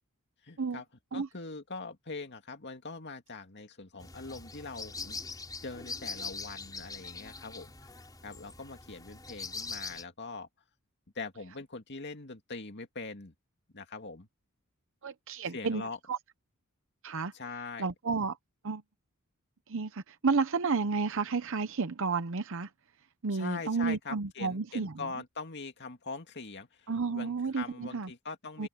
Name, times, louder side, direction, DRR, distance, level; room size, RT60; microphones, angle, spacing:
voice 1, 0.4-0.8 1.1-5.2 5.6-10.5 11.1-13.3 13.7-14.3 15.5-16.0 17.3-17.9 23.3-28.7, left 4 dB, 55° left, 2.3 m, -42 dB
sound 1, 4.0-10.0, left 4 dB, 20° left, 4.2 m, -42 dB
voice 2, 15.0-16.2 17.0-17.3 17.8-18.4 18.6-18.8 19.7-22.7 23.2-25.0 26.9-28.1 28.6-28.7, right 4 dB, 65° right, 0.8 m, -31 dB
head